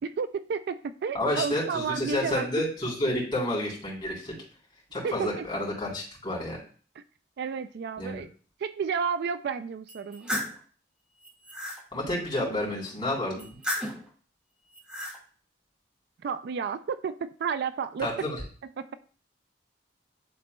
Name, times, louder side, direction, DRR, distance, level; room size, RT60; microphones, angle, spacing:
voice 1, 0.0-2.5 5.0-5.6 7.0-7.1 7.4-8.3 8.6-10.3 16.2-18.1 18.8-18.9, right 6 dB, 60° right, 12 dB, 0.3 m, -32 dB
voice 2, 1.1-4.3 4.9-6.6 8.0-8.2 11.9-13.5 18.0-18.4, left 1 dB, 25° left, -5 dB, 3.3 m, -30 dB
sound 1, 9.9-10.6 11.1-11.8 13.4-14.1 14.7-15.2, equal, 5° right, 1.7 m, -34 dB
10.5 x 4.0 x 2.2 m, 0.42 s
head